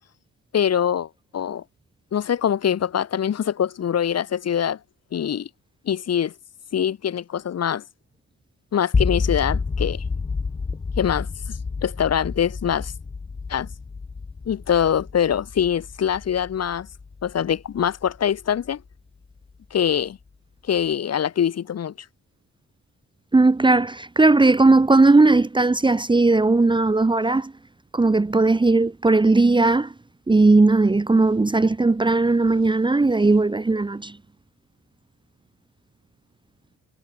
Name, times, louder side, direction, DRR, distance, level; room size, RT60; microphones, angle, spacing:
voice 1, 0.5-1.1 1.3-1.6 2.1-4.8 5.1-5.5 5.9-6.3 6.7-7.8 8.7-10.0 11.0-12.9 13.5-13.7 14.5-16.9 17.2-18.8 19.7-20.2 20.7-21.9, left 9 dB, 55° left, 3.6 m, -23 dB
sound 1, 8.9-18.9, left 4 dB, 20° left, 0.8 m, -29 dB
voice 2, 23.3-27.5 27.9-29.9 30.3-34.2, right 3 dB, 15° right, 1.2 m, -17 dB
cardioid pair, 90°, 30 cm